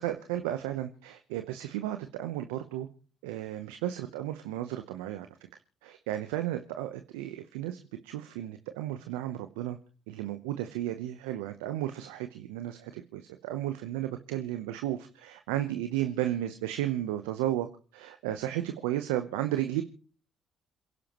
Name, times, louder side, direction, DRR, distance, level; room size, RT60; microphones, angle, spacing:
voice 1, 0.0-2.9 3.2-5.3 5.8-9.8 10.1-17.7 17.9-19.8, right 13 dB, 85° right, 8 dB, 0.8 m, -33 dB
27.5 x 11.0 x 3.1 m, 0.41 s
hypercardioid pair, 55°, 0 cm